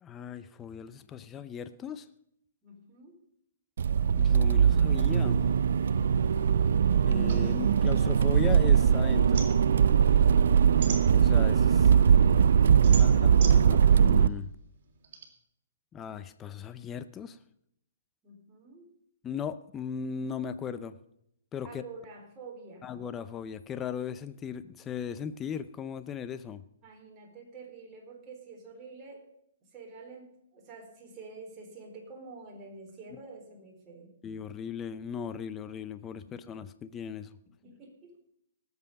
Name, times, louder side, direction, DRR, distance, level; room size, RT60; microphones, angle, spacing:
voice 1, 0.0-2.1 4.2-5.5 7.0-9.6 11.1-11.9 13.0-13.1 13.5-14.5 15.9-17.4 19.2-21.0 21.5-21.8 22.8-26.6 34.2-37.4, left 7 dB, 20° left, 13 dB, 0.6 m, -37 dB
voice 2, 2.6-3.1 12.9-13.9 18.2-18.9 21.6-22.9 26.8-29.3 29.6-34.1 37.6-38.1, right 4 dB, 25° right, 0 dB, 4.2 m, -48 dB
Accelerating revving vroom, 3.8-14.3, right 7 dB, 70° right, 0.5 m, -21 dB
sound 1, 7.3-8.8 9.1-11.6 12.1-15.2, right 6 dB, 50° right, 3.4 m, -41 dB
18.5 x 8.2 x 5.3 m, 0.75 s
hypercardioid pair, 145°, 0 cm